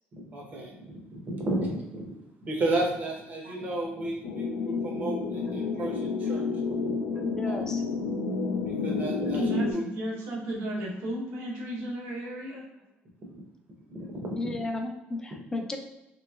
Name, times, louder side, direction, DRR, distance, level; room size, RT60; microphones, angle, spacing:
voice 1, 0.1-6.9 7.5-7.6 8.7-9.4 9.7-9.8 13.9-14.5, right 1 dB, 35° right, 1 dB, 0.7 m, -33 dB
sound 1, 4.2-9.7, left 4 dB, 90° left, 0.3 m, -30 dB
voice 2, 5.3-5.9 6.2-6.6 7.1-7.5 9.2-12.6, right 1 dB, 80° right, -2 dB, 0.9 m, -34 dB
voice 3, 7.2-7.8 14.4-15.8, left 2 dB, 15° left, 4 dB, 0.4 m, -33 dB
3.0 x 3.0 x 2.3 m, 0.95 s
cardioid pair, 145°, 5 cm